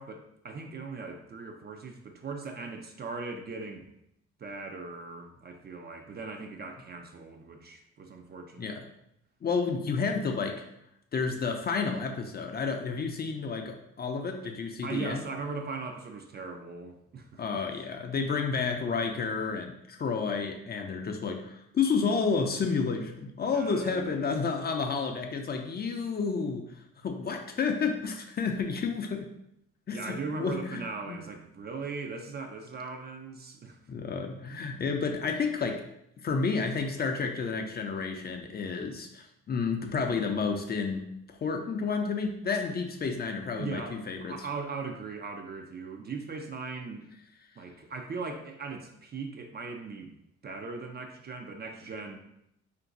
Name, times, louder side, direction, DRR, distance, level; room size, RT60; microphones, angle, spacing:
voice 1, 0.0-3.9 4.4-8.8 14.4-14.5 14.8-17.6 23.5-24.2 29.9-33.8 43.6-47.1 47.6-50.1 50.4-52.2, right 4 dB, 35° right, 4 dB, 0.4 m, -39 dB
voice 2, 9.4-10.6 11.1-15.2 17.4-26.6 27.0-29.3 29.9-30.8 31.1-31.3 33.9-35.8 36.2-44.4, left 5 dB, 35° left, 3 dB, 0.4 m, -31 dB
2.5 x 2.2 x 3.8 m, 0.77 s
cardioid pair, 90°, 30 cm